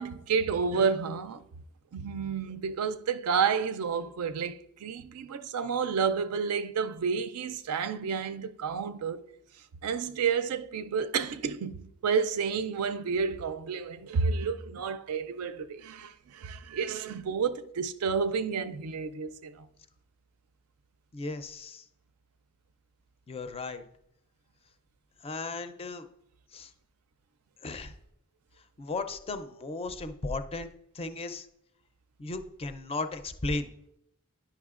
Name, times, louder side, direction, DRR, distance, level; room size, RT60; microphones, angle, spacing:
voice 1, 0.0-1.4 1.9-9.2 9.8-19.7, right 6 dB, 75° right, 0.4 m, -30 dB
voice 2, 21.1-21.8 23.3-23.8 25.2-26.1 26.5-26.7 27.6-27.9 28.8-30.7 30.9-31.5 32.2-33.7, left 3 dB, 25° left, 0.4 m, -35 dB
10.0 x 5.7 x 2.4 m
head